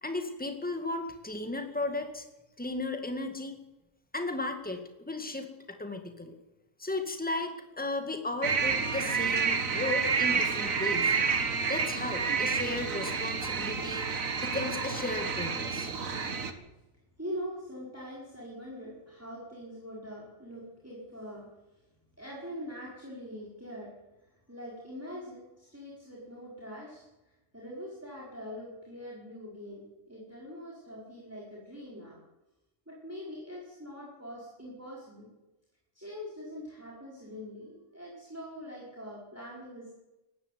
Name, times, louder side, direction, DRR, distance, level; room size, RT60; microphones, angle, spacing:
voice 1, 0.0-2.3 2.6-3.6 4.1-6.4 6.8-11.1 11.7-14.1 14.4-15.9, left 2 dB, 5° left, 6 dB, 2.2 m, -35 dB
sound 1, 8.4-16.5, right 5 dB, 90° right, 2.1 m, -29 dB
voice 2, 17.2-21.8 22.2-24.0 24.2-32.2 32.9-35.3 35.9-39.9, equal, 10° right, -5 dB, 5.0 m, -43 dB
19.0 x 15.5 x 9.4 m, 1.0 s
omnidirectional pair, 1.4 m